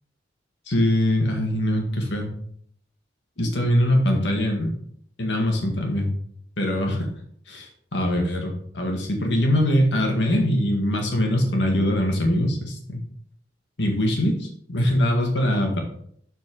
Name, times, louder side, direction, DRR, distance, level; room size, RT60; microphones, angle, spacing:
voice 1, 0.7-2.3 3.4-4.8 5.2-6.1 6.6-7.1 7.5-13.0 13.8-15.8, left 1 dB, 85° left, 2 dB, 1.8 m, -22 dB
7.5 x 4.5 x 4.8 m, 0.64 s
head